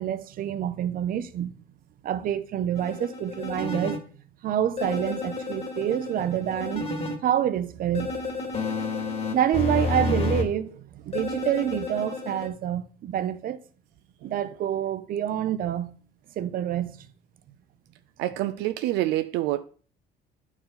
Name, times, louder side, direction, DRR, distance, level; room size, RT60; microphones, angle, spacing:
voice 1, 0.0-1.5 2.0-4.0 4.4-6.8 7.2-8.1 9.3-13.6 14.2-15.9 16.4-17.0, right 10 dB, 60° right, 0.7 m, -27 dB
sound 1, 2.7-4.0 4.8-7.2 7.9-10.4 11.1-12.5, left 3 dB, 35° left, 1.9 m, -30 dB
voice 2, 18.2-19.6, right 15 dB, 90° right, 0.4 m, -27 dB
10.0 x 4.6 x 3.9 m
cardioid pair, 110°, 17 cm